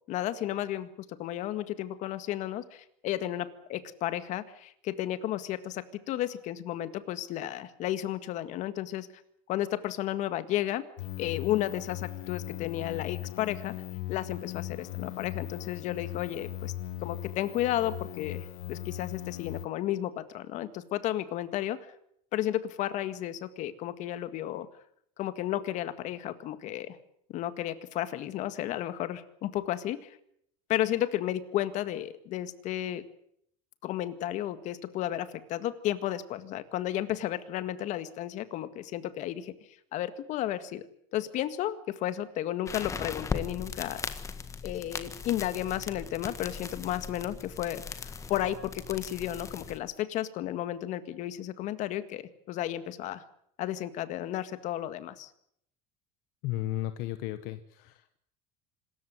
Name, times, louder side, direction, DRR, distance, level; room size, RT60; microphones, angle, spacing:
voice 1, 0.1-9.1 9.5-10.8 11.2-13.7 14.1-16.7 17.0-21.8 22.3-24.7 25.2-27.0 27.3-30.2 30.7-33.0 33.8-39.5 39.9-44.0 44.6-47.8 48.3-53.2 53.6-55.3, left 13 dB, 50° left, 12 dB, 1.9 m, -33 dB
sound 1, 11.0-19.7, left 14 dB, 90° left, 1.5 m, -39 dB
sound 2, 42.7-49.8, left 5 dB, 20° left, 1.7 m, -39 dB
voice 2, 56.4-58.2, left 14 dB, 65° left, 11 dB, 1.2 m, -34 dB
26.0 x 14.0 x 9.4 m, 0.70 s
cardioid pair, 165°, 16 cm